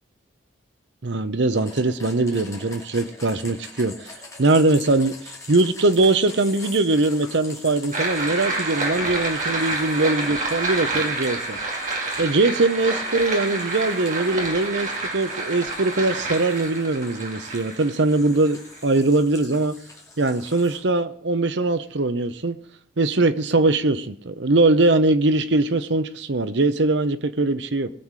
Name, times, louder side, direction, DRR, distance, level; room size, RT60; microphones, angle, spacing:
voice 1, 1.0-4.1 4.4-11.6 12.2-19.7 20.2-22.6 23.0-27.9, right 2 dB, 70° right, 0.9 m, -21 dB
sound 1, 1.5-20.8, left 3 dB, 15° left, 2.6 m, -44 dB
sound 2, 7.9-18.8, right 2 dB, 40° right, 2.4 m, -28 dB
20.5 x 7.5 x 4.8 m
head